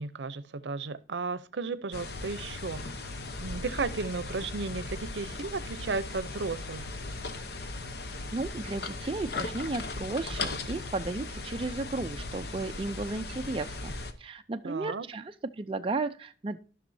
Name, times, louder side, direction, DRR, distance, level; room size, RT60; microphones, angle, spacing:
voice 1, 0.0-3.1 3.4-6.9 14.6-15.0, right 4 dB, 85° right, 0.6 m, -34 dB
sound 1, 1.9-14.1, left 3 dB, 65° left, 0.8 m, -38 dB
voice 2, 8.3-16.6, right 3 dB, 30° right, 0.4 m, -34 dB
13.5 x 6.1 x 2.7 m
head